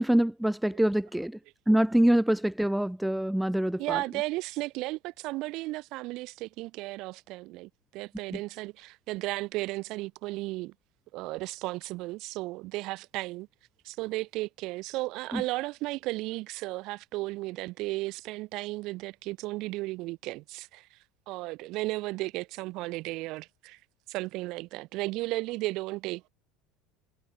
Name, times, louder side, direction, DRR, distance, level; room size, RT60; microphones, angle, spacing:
voice 1, 0.0-1.4 1.7-4.0 15.3-15.4, right 1 dB, 5° right, 1.0 m, -25 dB
voice 2, 3.8-10.7 11.1-13.5 13.8-21.0 21.3-23.8 24.1-26.3, right 20 dB, 55° right, 3.7 m, -34 dB
hypercardioid pair, 75°, 0 cm